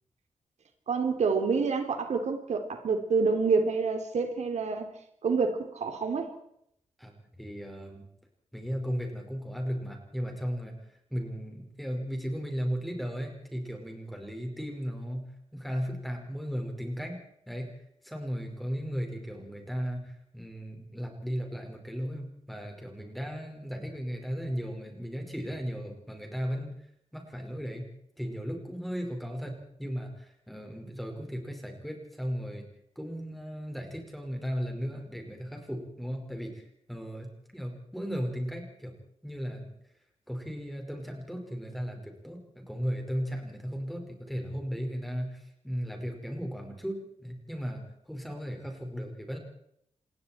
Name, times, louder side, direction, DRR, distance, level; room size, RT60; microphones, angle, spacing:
voice 1, 0.9-4.9 5.2-6.3, right 4 dB, 75° right, 3.4 m, -27 dB
voice 2, 7.0-8.1 8.5-10.8 11.1-15.3 15.5-17.2 17.5-17.7 18.0-26.7 27.1-27.9 28.2-32.7 33.0-38.9 39.2-39.7 40.3-49.4, equal, ahead, 5.2 m, -36 dB
27.0 x 21.5 x 4.5 m
wide cardioid pair, 155°, 12 cm